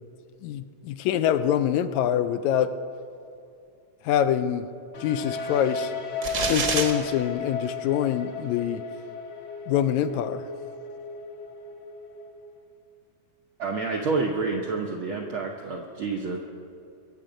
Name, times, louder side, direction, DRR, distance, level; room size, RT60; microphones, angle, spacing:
voice 1, 0.4-2.7 4.0-4.7 5.0-5.9 6.5-8.8 9.7-10.4, left 10 dB, 80° left, 11 dB, 1.8 m, -25 dB
sound 1, 4.9-12.7, left 4 dB, 60° left, 2.3 m, -35 dB
sound 2, 6.2-6.9, right 4 dB, 50° right, 1.1 m, -26 dB
voice 2, 13.6-16.4, right 4 dB, 75° right, 1 dB, 1.2 m, -28 dB
22.5 x 7.8 x 5.1 m, 2.6 s
omnidirectional pair, 3.5 m